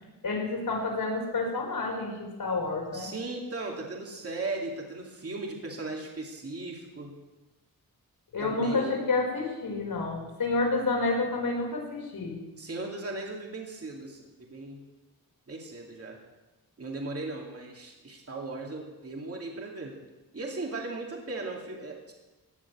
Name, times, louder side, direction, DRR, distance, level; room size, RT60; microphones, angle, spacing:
voice 1, 0.2-3.1 8.3-12.4, left 3 dB, 75° left, -2 dB, 5.1 m, -29 dB
voice 2, 2.9-7.2 8.4-9.1 12.6-14.8 15.5-16.2 16.8-20.0 20.3-22.1, right 2 dB, 40° right, 0 dB, 2.5 m, -37 dB
17.0 x 7.1 x 9.8 m, 1.1 s
wide cardioid pair, 130°, 36 cm